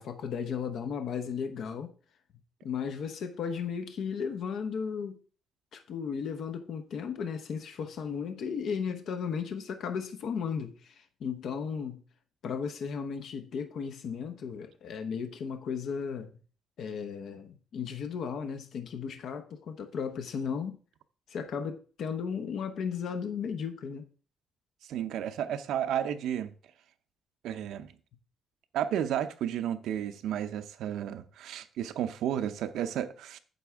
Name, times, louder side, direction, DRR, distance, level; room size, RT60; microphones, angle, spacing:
voice 1, 0.0-1.9 2.6-5.2 5.7-12.0 12.4-16.3 16.8-20.8 21.3-24.1, left 6 dB, 55° left, 0.8 m, -35 dB
voice 2, 24.9-26.5 27.4-27.9 28.7-33.4, right 10 dB, 80° right, 0.7 m, -32 dB
9.3 x 7.0 x 3.5 m
cardioid pair, 175°, 0 cm